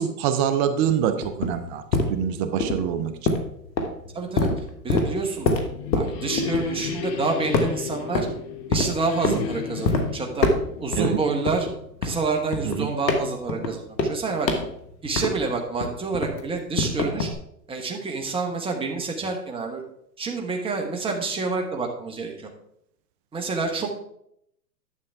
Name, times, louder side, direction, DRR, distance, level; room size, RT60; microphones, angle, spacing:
voice 1, 0.0-1.8 2.1-3.3 9.3-9.4 11.0-11.2 12.6-12.9, right 8 dB, 25° right, 10 dB, 0.6 m, -25 dB
sound 1, 0.8-7.2 7.5-8.4 8.7-9.4 9.8-10.0 10.4-11.1 11.5-15.5 15.8-17.3, left 3 dB, 85° left, 1.7 m, -25 dB
voice 2, 4.1-4.5 4.8-5.6 5.9-8.3 8.7-10.5 10.8-11.7 12.0-14.5 15.0-17.3 17.7-19.8 20.2-22.5 23.3-23.9, right 4 dB, 10° right, 2 dB, 1.2 m, -28 dB
sound 2, 5.4-12.0, left 7 dB, 20° left, 0.4 m, -34 dB
11.0 x 7.0 x 3.5 m, 0.74 s
hypercardioid pair, 125°, 50 cm